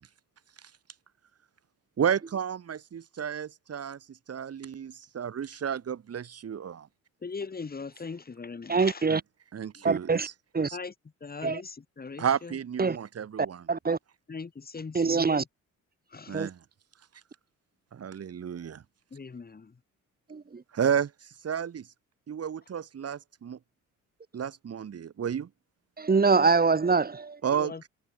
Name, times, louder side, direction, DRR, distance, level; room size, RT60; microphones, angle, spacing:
voice 1, 2.0-4.0 4.3-6.9 9.1-9.2 9.5-10.3 10.7-10.8 12.2-13.6 16.3-16.6 17.9-18.8 20.7-21.1 21.4-21.9 22.3-23.6 24.3-25.5 27.4-27.9, right 8 dB, 55° right, 5.3 m, -31 dB
voice 2, 7.2-9.1 9.8-9.9 10.7-10.9 11.2-12.6 14.3-15.4 16.1-16.4 19.1-19.7 27.5-27.9, left 4 dB, 30° left, 4.1 m, -40 dB
voice 3, 8.7-9.2 9.8-10.3 10.5-10.7 11.4-11.6 12.8-13.0 13.7-14.0 14.9-15.4 16.3-16.5 20.3-20.6 26.0-27.4, right 4 dB, 30° right, 4.6 m, -24 dB
cardioid pair, 90°, 30 cm